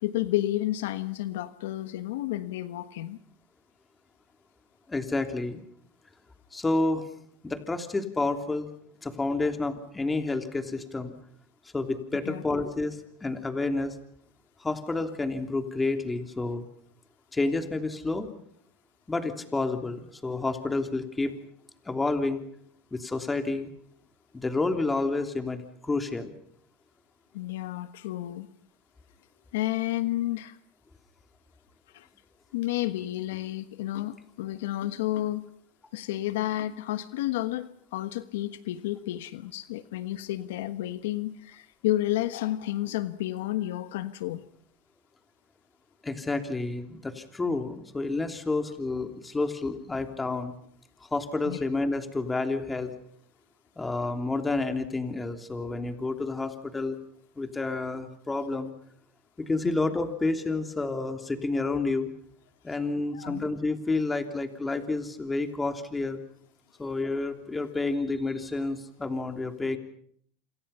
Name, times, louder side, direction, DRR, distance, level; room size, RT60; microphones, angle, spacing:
voice 1, 0.0-3.2 12.2-12.4 27.3-28.5 29.5-30.6 31.9-32.1 32.5-35.5 35.9-44.5 51.4-51.6 63.1-63.4, left 15 dB, 80° left, 12 dB, 1.3 m, -31 dB
voice 2, 4.9-5.6 6.5-7.1 7.4-8.7 9.0-11.1 11.7-13.9 14.6-16.6 17.3-18.3 19.1-21.3 21.8-22.4 22.9-23.7 24.3-26.3 46.0-50.5 51.1-52.9 53.8-57.0 57.4-58.7 59.4-62.1 62.6-66.2 66.8-69.8, left 3 dB, 10° left, 6 dB, 3.1 m, -29 dB
28.0 x 27.0 x 5.7 m, 0.63 s
supercardioid pair, 120°, 0 cm